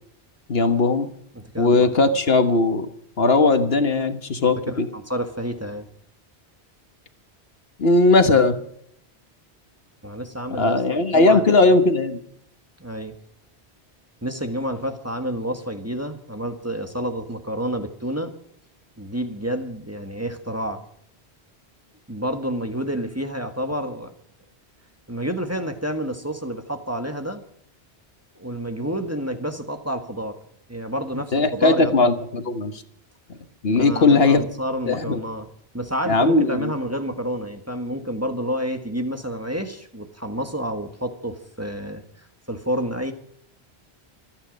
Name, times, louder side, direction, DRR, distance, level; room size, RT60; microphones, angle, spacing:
voice 1, 0.5-1.1 1.6-2.9 3.2-4.9 7.8-8.6 10.6-12.2 31.3-32.8 33.6-34.5 34.9-35.2 36.1-36.7, left 3 dB, 65° left, 9 dB, 1.5 m, -18 dB
voice 2, 1.3-1.9 4.7-5.9 10.0-11.5 12.8-13.1 14.2-18.3 19.0-20.8 22.1-24.1 25.1-27.4 28.3-30.4 30.7-31.9 33.7-35.5 35.7-43.1, equal, 15° right, 6 dB, 1.5 m, -29 dB
26.0 x 9.4 x 5.2 m, 0.67 s
omnidirectional pair, 1.1 m